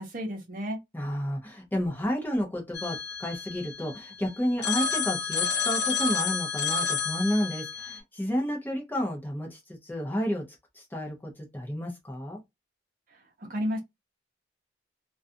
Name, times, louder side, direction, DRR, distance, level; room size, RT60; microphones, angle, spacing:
voice 1, 0.0-0.8 13.4-13.8, equal, 45° right, 0.7 m, -32 dB
voice 2, 0.9-12.4, equal, 10° left, 0.5 m, -31 dB
Telephone, 2.7-4.1 4.6-8.0, left 5 dB, 65° left, 0.9 m, -30 dB
2.4 x 2.3 x 2.5 m
head